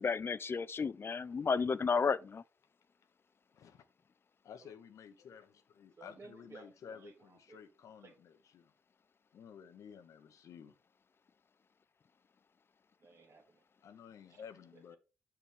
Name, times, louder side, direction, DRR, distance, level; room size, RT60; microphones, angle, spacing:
voice 1, 0.0-2.4, left 5 dB, 45° left, 0.4 m, -32 dB
voice 2, 3.5-3.8 4.4-8.7 9.3-10.7 13.8-15.0, left 7 dB, 70° left, 0.8 m, -53 dB
voice 3, 6.0-7.6 8.0-8.1 13.0-13.6 14.3-14.4, right 4 dB, 55° right, 1.8 m, -56 dB
6.0 x 5.8 x 3.5 m
hypercardioid pair, 40°, 6 cm